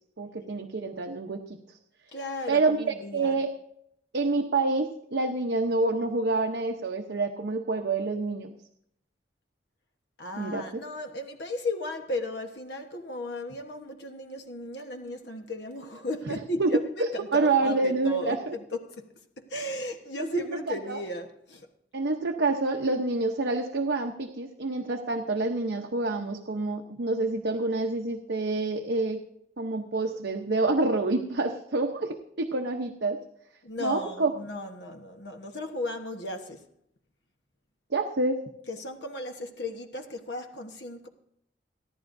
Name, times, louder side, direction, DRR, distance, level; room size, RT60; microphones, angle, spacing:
voice 1, 0.2-1.4 2.5-3.5 4.1-8.5 10.4-10.6 16.3-16.4 16.6-16.7 17.0-18.5 20.2-21.0 21.9-29.2 29.6-33.2 33.8-34.3 37.9-38.4, right 3 dB, 75° right, 0.9 m, -27 dB
voice 2, 2.1-3.4 10.2-19.1 19.4-21.7 33.6-36.7 38.7-41.1, left 1 dB, 70° left, 1.2 m, -35 dB
29.5 x 10.5 x 2.7 m
head